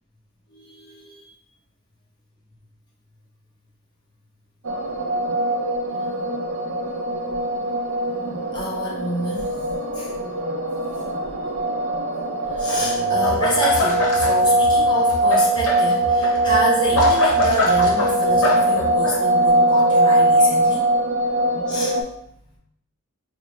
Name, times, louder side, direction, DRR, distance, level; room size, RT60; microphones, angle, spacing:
voice 1, 0.5-1.3 8.5-9.7 9.9-10.1 10.9-11.0 12.4-20.9 21.7-22.0, right 1 dB, 20° left, -4 dB, 0.8 m, -28 dB
sound 1, 4.6-22.0, right 1 dB, 60° right, 0.5 m, -21 dB
sound 2, 13.2-14.3 14.6-19.2, left 2 dB, 65° left, 0.8 m, -24 dB
3.1 x 2.1 x 4.2 m, 0.75 s
head